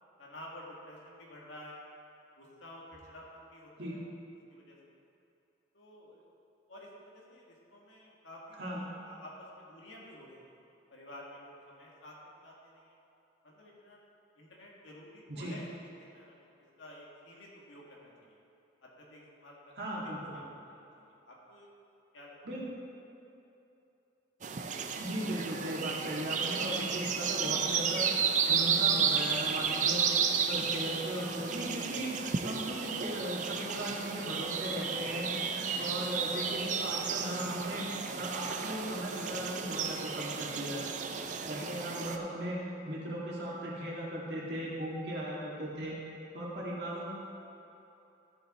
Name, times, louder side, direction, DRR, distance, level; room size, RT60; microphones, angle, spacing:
voice 1, 0.2-1.8 2.4-4.0 4.5-4.8 5.7-6.2 6.7-10.5 10.9-12.9 13.4-14.0 14.3-16.3 16.8-18.4 18.8-21.7 22.1-22.6 32.9-33.2 33.5-33.8 40.9-41.0, left 1 dB, 80° left, -3 dB, 1.8 m, -51 dB
voice 2, 19.8-20.4 22.5-22.6 25.0-30.0 30.5-37.8 38.1-40.8 41.5-42.6 42.9-46.0 46.3-47.1, right 1 dB, 60° right, -5 dB, 2.0 m, -37 dB
sound 1, 24.4-42.2, right 6 dB, 40° right, 0.4 m, -33 dB
13.5 x 5.5 x 4.2 m, 2.9 s
head